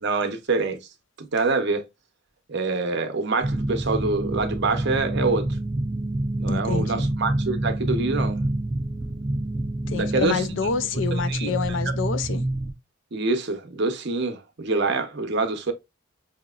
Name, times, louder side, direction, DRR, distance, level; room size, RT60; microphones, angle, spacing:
voice 1, 0.0-0.8 1.2-1.8 2.5-5.5 6.4-8.4 9.9-10.4 11.3-11.6 13.1-15.7, right 3 dB, 55° right, 0.7 m, -25 dB
sound 1, 3.4-12.7, right 1 dB, 20° right, 0.4 m, -27 dB
voice 2, 6.5-7.1 9.9-12.4, left 5 dB, 60° left, 0.4 m, -28 dB
5.0 x 2.8 x 2.3 m
head